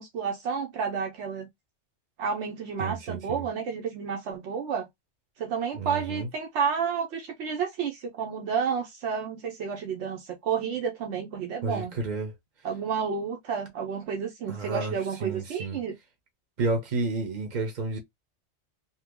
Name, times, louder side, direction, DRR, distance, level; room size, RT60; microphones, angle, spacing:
voice 1, 0.0-1.5 2.2-4.9 5.4-11.9 12.6-15.9, right 6 dB, 85° right, 1.0 m, -31 dB
voice 2, 2.8-3.5 5.7-6.3 11.6-12.3 14.5-14.9 15.2-15.8 16.6-18.0, right 3 dB, 45° right, 0.9 m, -31 dB
2.9 x 2.3 x 3.6 m
omnidirectional pair, 1.2 m